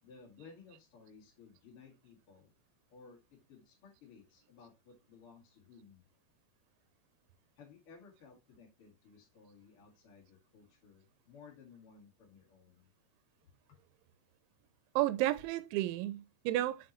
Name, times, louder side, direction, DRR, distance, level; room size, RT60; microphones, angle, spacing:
voice 1, 0.0-2.5 2.9-6.1 7.6-12.9 13.4-13.8, left 5 dB, 50° left, 1.7 m, -58 dB
voice 2, 15.0-16.9, right 15 dB, 85° right, 3.0 m, -32 dB
6.6 x 5.8 x 3.0 m
omnidirectional pair, 5.3 m